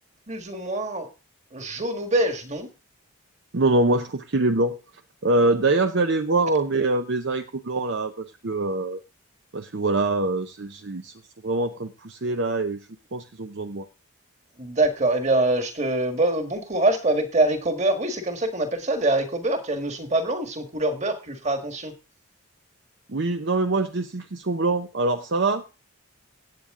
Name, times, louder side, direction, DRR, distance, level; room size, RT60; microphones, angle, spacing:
voice 1, 0.3-1.1 1.5-2.7 14.6-21.9, right 2 dB, 30° right, 7 dB, 1.7 m, -24 dB
voice 2, 3.5-4.8 5.2-9.0 9.5-11.1 11.4-12.8 13.1-13.9 23.1-25.6, right 2 dB, 55° right, 7 dB, 0.7 m, -24 dB
16.5 x 8.6 x 3.7 m, 0.31 s
head